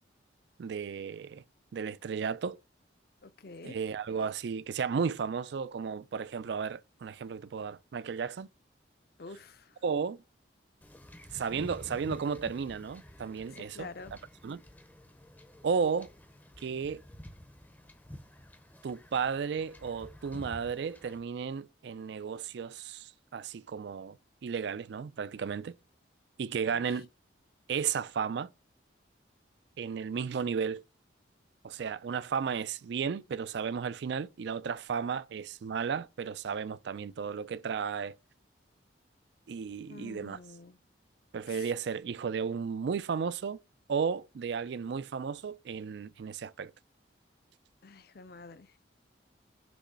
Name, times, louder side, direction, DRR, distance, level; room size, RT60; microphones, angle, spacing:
voice 1, 0.6-1.4 1.7-2.6 3.6-8.5 9.8-10.2 11.3-14.2 14.4-14.6 15.6-16.1 16.6-17.0 18.8-24.2 24.4-25.7 26.4-27.1 27.7-28.5 29.8-30.8 31.6-38.1 39.5-40.4 41.3-43.6 43.9-46.7, right 6 dB, 60° right, 0.3 m, -34 dB
voice 2, 3.2-3.8 9.2-9.7 13.6-14.1 26.6-26.8 39.9-40.8 41.5-41.7 47.8-48.8, left 3 dB, 50° left, 0.5 m, -47 dB
Wind / Ocean / Boat Water vehicle, 10.8-21.2, equal, 10° left, 0.6 m, -50 dB
6.2 x 3.0 x 5.5 m
head